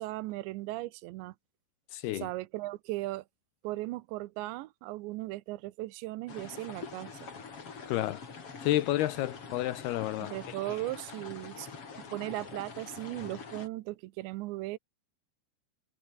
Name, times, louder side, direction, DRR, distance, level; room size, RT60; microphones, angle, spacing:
voice 1, 0.0-1.3 2.1-3.2 3.6-7.3 10.2-11.7 12.1-14.8, right 18 dB, 85° right, 3.0 m, -37 dB
voice 2, 1.9-2.3 7.9-8.2 8.6-10.5, left 15 dB, 75° left, 2.6 m, -30 dB
sound 1, 6.3-13.7, left 5 dB, 35° left, 3.8 m, -45 dB
omnidirectional pair, 5.2 m